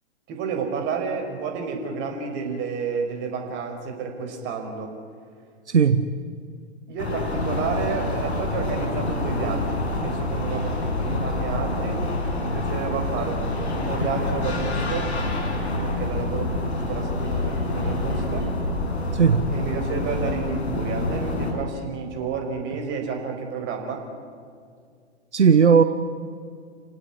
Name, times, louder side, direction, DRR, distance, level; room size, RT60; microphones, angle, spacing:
voice 1, 0.3-4.9 6.9-12.1 12.4-15.1 15.8-18.5 19.5-24.1, right 5 dB, 35° right, 3 dB, 5.4 m, -31 dB
voice 2, 5.7-6.2 19.1-19.5 25.3-25.8, right 6 dB, 80° right, 10 dB, 1.2 m, -17 dB
sound 1, 7.0-21.5, left 2 dB, 70° left, 6.7 m, -27 dB
29.5 x 17.5 x 9.7 m, 2.2 s
figure-of-eight pair, 110°, 34 cm